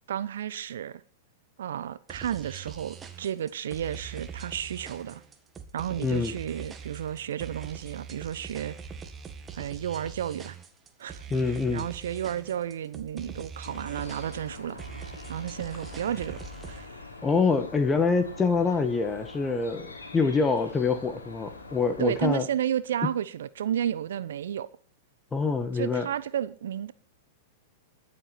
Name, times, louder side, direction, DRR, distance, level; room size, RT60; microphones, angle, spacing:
voice 1, 0.1-1.0 1.6-5.2 5.7-8.8 9.5-10.6 11.0-14.8 15.3-16.4 16.7-17.1 22.0-24.7 25.7-26.9, right 10 dB, 65° right, 0.9 m, -32 dB
sound 1, 2.1-16.9, right 6 dB, 20° right, 1.9 m, -42 dB
voice 2, 6.0-6.3 11.3-11.8 17.2-19.9 20.1-22.4 25.3-26.1, left 4 dB, 15° left, 1.6 m, -25 dB
sound 2, 13.6-22.3, left 3 dB, 80° left, 3.6 m, -44 dB
22.0 x 7.8 x 4.4 m
figure-of-eight pair, 100°, 0 cm